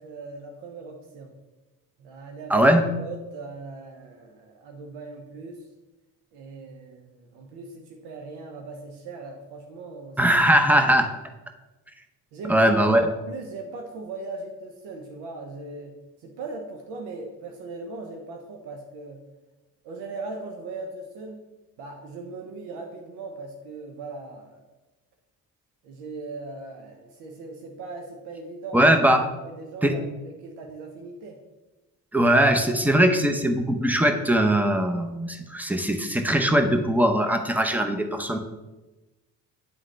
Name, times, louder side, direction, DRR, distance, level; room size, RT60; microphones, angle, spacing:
voice 1, 0.0-1.3 2.0-2.7 3.0-5.7 6.3-10.4 12.3-19.2 19.8-21.4 21.8-24.6 25.8-28.9 29.4-31.4, right 3 dB, 85° right, 2 dB, 0.8 m, -39 dB
voice 2, 2.5-2.9 10.2-11.1 12.5-13.0 28.7-29.2 29.8-30.0 32.1-38.4, right 1 dB, 5° right, 5 dB, 0.7 m, -20 dB
9.5 x 3.7 x 3.3 m, 1.1 s
supercardioid pair, 75°, 39 cm